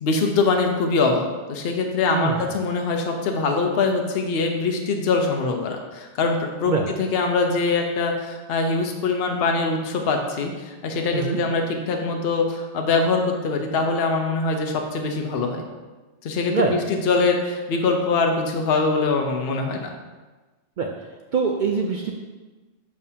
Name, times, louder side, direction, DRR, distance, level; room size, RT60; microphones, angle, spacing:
voice 1, 0.0-6.7 7.0-15.6 16.2-19.9, left 4 dB, 55° left, 3 dB, 0.9 m, -23 dB
voice 2, 2.1-2.6 6.7-6.9 11.1-11.4 16.5-16.7 20.8-20.9 21.3-22.1, right 5 dB, 65° right, 1 dB, 0.4 m, -24 dB
7.1 x 5.4 x 2.8 m, 1.2 s
omnidirectional pair, 1.3 m